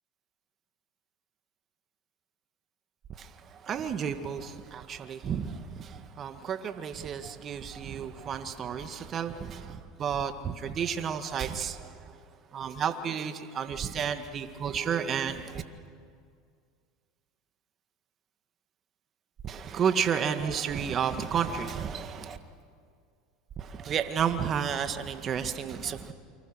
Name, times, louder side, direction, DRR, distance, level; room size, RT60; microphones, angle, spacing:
voice 1, 3.1-12.2 12.5-15.6 19.4-22.4 23.6-26.1, right 7 dB, 40° right, 9 dB, 1.8 m, -32 dB
28.5 x 25.0 x 6.4 m, 2.2 s
hypercardioid pair, 85°, 0 cm